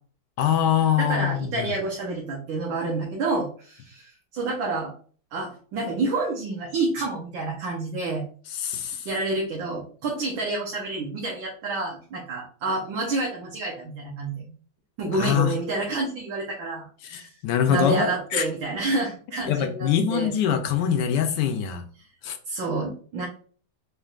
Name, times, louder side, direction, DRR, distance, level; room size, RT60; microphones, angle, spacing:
voice 1, 0.4-1.7 8.5-9.1 15.1-15.5 17.0-18.4 19.5-21.8 22.2-22.4, left 9 dB, 75° left, 6 dB, 1.0 m, -24 dB
voice 2, 1.0-4.9 5.3-8.2 9.0-14.4 15.0-17.3 17.7-20.3 22.5-23.3, right 3 dB, 70° right, -3 dB, 1.6 m, -29 dB
4.4 x 3.4 x 2.4 m, 0.44 s
omnidirectional pair, 2.2 m